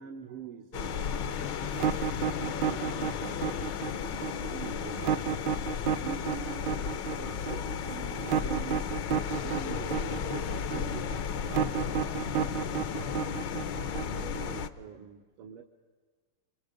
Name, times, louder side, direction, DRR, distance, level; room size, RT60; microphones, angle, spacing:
voice 1, 0.0-3.5 4.5-5.3 6.0-8.9 9.3-13.5 13.9-15.6, right 7 dB, 80° right, 3 dB, 2.1 m, -46 dB
sound 1, 0.7-14.7, left 7 dB, 65° left, 1.4 m, -34 dB
sound 2, 1.7-14.6, right 8 dB, 65° right, 1.3 m, -31 dB
28.5 x 24.5 x 5.1 m, 1.4 s
omnidirectional pair, 2.4 m